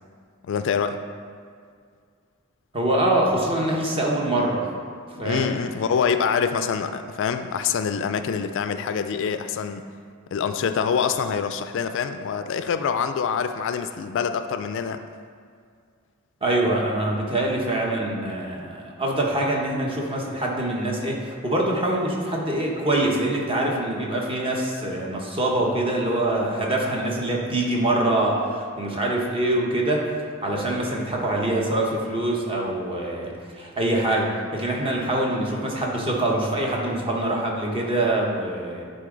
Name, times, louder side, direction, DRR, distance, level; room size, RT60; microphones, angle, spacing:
voice 1, 0.5-1.0 5.2-9.8 10.3-15.0, left 6 dB, 60° left, 9 dB, 0.3 m, -25 dB
voice 2, 2.7-4.6 5.2-5.5 16.4-30.0 30.4-38.8, right 1 dB, 25° right, -2 dB, 1.1 m, -24 dB
10.5 x 4.0 x 3.9 m, 2.1 s
head